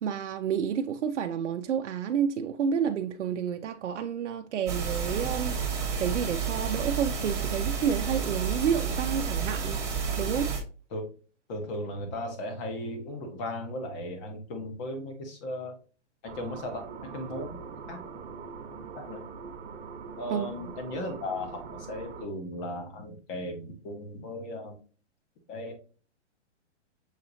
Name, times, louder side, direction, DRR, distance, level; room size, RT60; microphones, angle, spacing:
voice 1, 0.0-5.6 6.0-9.8 10.2-10.5 20.3-20.5, right 8 dB, 85° right, 0.6 m, -30 dB
sound 1, 4.7-10.6, right 6 dB, 10° right, 1.0 m, -30 dB
voice 2, 11.5-15.7 16.2-18.0 19.0-19.2 20.2-24.8 25.5-25.7, left 1 dB, 25° left, 1.1 m, -36 dB
sound 2, 16.2-22.3, right 5 dB, 60° right, 1.1 m, -42 dB
6.5 x 2.8 x 2.6 m
hypercardioid pair, 155°, 35 cm